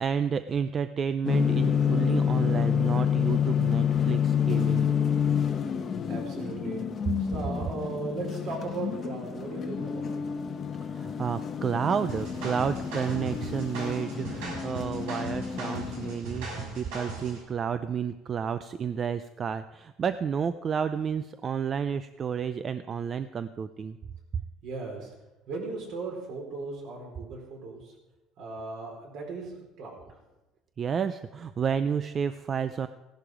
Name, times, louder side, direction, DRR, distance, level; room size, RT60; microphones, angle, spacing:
voice 1, 0.0-4.9 10.8-24.0 30.8-32.9, right 7 dB, 25° right, 12 dB, 0.4 m, -31 dB
sound 1, 1.2-16.2, left 8 dB, 25° left, 0.9 m, -28 dB
voice 2, 6.1-6.9 7.2-10.2 24.6-25.1 25.5-27.9 28.4-30.2, right 3 dB, 55° right, 1 dB, 4.4 m, -37 dB
sound 2, 12.1-17.4, right 3 dB, 90° right, 6.7 m, -38 dB
16.5 x 11.5 x 5.0 m, 1.1 s
cardioid pair, 175°, 0 cm